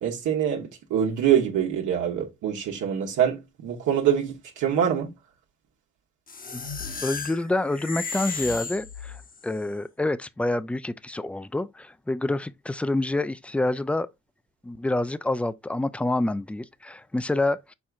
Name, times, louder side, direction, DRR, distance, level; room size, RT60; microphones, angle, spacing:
voice 1, 0.0-3.4 3.6-5.1, right 9 dB, 80° right, 1.2 m, -24 dB
sound 1, 6.3-9.5, left 5 dB, 30° left, 0.9 m, -35 dB
voice 2, 7.0-14.1 14.6-17.7, left 2 dB, 5° left, 0.3 m, -27 dB
4.7 x 4.5 x 2.4 m
cardioid pair, 90°, 30 cm